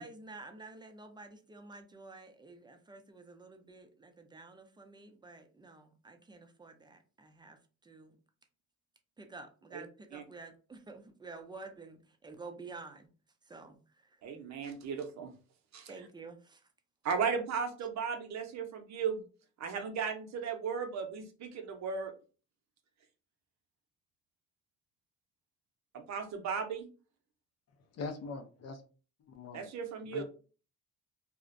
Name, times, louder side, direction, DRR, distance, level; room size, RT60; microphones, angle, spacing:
voice 1, 0.0-8.1 9.2-13.1 13.4-13.8 14.0-14.2 15.9-16.7, right 3 dB, 15° right, 0.4 m, -50 dB
voice 2, 14.2-15.3 15.7-15.9 17.0-19.2 19.6-22.1 25.9-26.9 29.5-30.2, right 6 dB, 65° right, 0.6 m, -36 dB
voice 3, 27.8-28.8 29.3-29.7 30.0-30.2, left 4 dB, 55° left, 0.5 m, -42 dB
2.4 x 2.0 x 2.5 m
cardioid pair, 90°, 30 cm